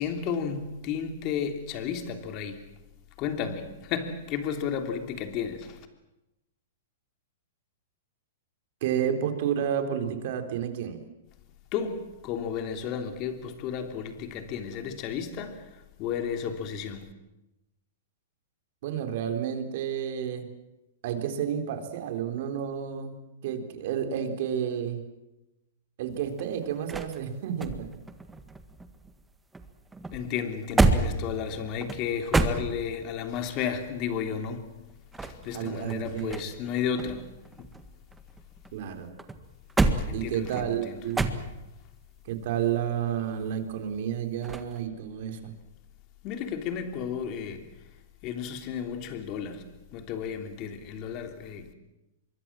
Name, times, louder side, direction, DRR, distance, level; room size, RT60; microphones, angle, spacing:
voice 1, 0.0-2.7 3.2-5.9 11.7-17.1 30.1-34.7 35.2-37.3 37.6-37.7 40.0-41.0 46.2-47.8 48.2-51.7, left 7 dB, 35° left, 3.2 m, -33 dB
voice 2, 8.8-11.0 18.8-20.5 21.0-25.0 26.0-27.9 35.3-36.4 38.7-39.1 40.1-41.3 42.2-45.5, right 9 dB, 55° right, 3.8 m, -31 dB
sound 1, 26.1-29.3 29.5-33.2 34.9-36.7 37.0-38.7 39.2-41.8 44.4-44.8, right 3 dB, 10° right, 1.6 m, -29 dB
25.5 x 23.0 x 7.6 m
hypercardioid pair, 145°, 0 cm